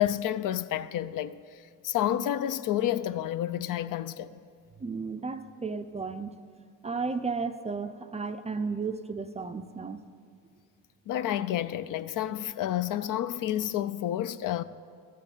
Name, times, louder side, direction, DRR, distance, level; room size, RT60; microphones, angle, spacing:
voice 1, 0.0-4.3 11.1-14.6, left 12 dB, 60° left, 0.5 m, -30 dB
voice 2, 4.8-6.3 6.8-10.0, right 4 dB, 20° right, 0.4 m, -33 dB
13.0 x 6.6 x 7.4 m
cardioid pair, 105°, 36 cm